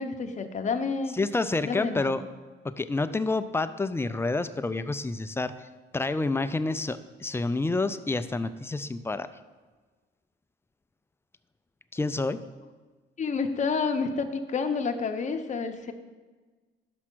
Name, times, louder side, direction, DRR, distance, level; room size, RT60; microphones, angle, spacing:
voice 1, 0.0-1.2 1.6-2.2 13.2-15.9, left 5 dB, 35° left, 6 dB, 0.7 m, -29 dB
voice 2, 1.1-2.3 2.6-5.7 5.9-9.3 11.9-12.4, left 3 dB, 10° left, 12 dB, 0.4 m, -28 dB
6.1 x 5.5 x 6.1 m, 1.3 s
cardioid pair, 90°, 20 cm